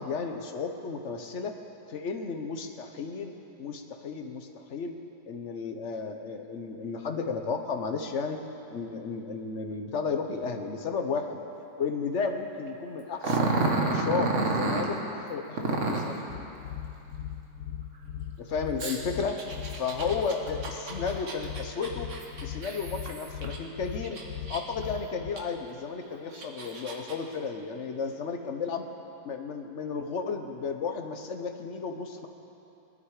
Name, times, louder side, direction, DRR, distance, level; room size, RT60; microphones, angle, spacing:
voice 1, 0.0-1.6 1.9-4.9 5.3-8.4 8.7-11.4 11.8-16.2 18.4-19.4 19.7-22.1 22.4-24.2 24.5-28.9 29.2-32.3, left 5 dB, 50° left, 5 dB, 1.1 m, -33 dB
Growling, 13.2-14.9 15.6-16.2 18.8-23.6 24.0-24.8 25.4-25.5 26.1-27.1, right 3 dB, 45° right, 1.5 m, -30 dB
sound 1, 16.3-25.3, left 10 dB, 75° left, 1.4 m, -38 dB
20.5 x 12.5 x 4.9 m, 2.8 s
omnidirectional pair, 1.9 m